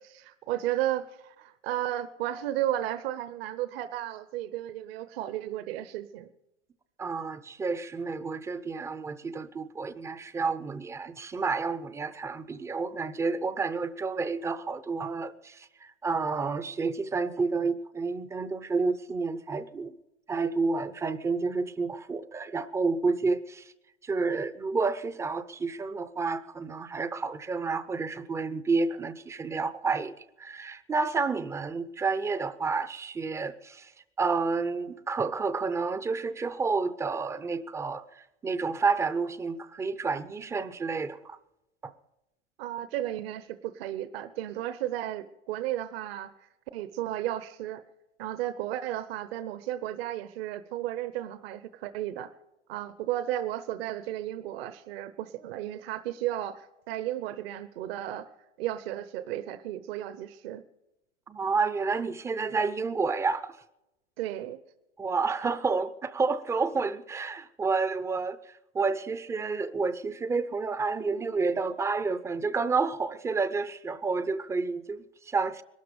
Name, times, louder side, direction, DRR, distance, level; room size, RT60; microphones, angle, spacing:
voice 1, 0.2-6.3 42.6-46.5 46.7-47.8 48.2-52.3 52.7-58.3 58.6-60.6 64.2-64.6, right 13 dB, 55° right, 13 dB, 1.0 m, -34 dB
voice 2, 7.0-19.9 20.3-23.7 24.0-33.9 34.2-41.4 41.8-41.9 61.3-63.6 65.0-75.6, right 4 dB, 10° right, 14 dB, 0.5 m, -30 dB
21.5 x 12.5 x 5.2 m, 0.93 s
hypercardioid pair, 125°, 36 cm